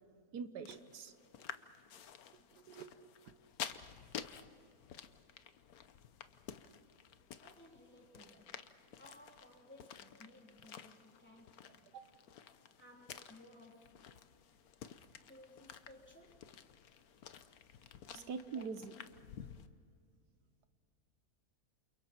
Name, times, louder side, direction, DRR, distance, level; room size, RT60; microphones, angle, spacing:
voice 1, 0.3-1.1 2.6-3.4 3.7-3.9 11.9-12.0 18.1-18.9, right 5 dB, 85° right, 10 dB, 1.5 m, -45 dB
sound 1, 0.7-19.7, left 8 dB, 65° left, 1.3 m, -52 dB
voice 2, 7.4-8.7 9.0-11.9 12.8-14.0 15.3-16.6 18.1-18.8 19.3-19.5, left 1 dB, 5° left, -1 dB, 3.5 m, -60 dB
29.0 x 28.5 x 4.5 m, 2.4 s
omnidirectional pair, 1.7 m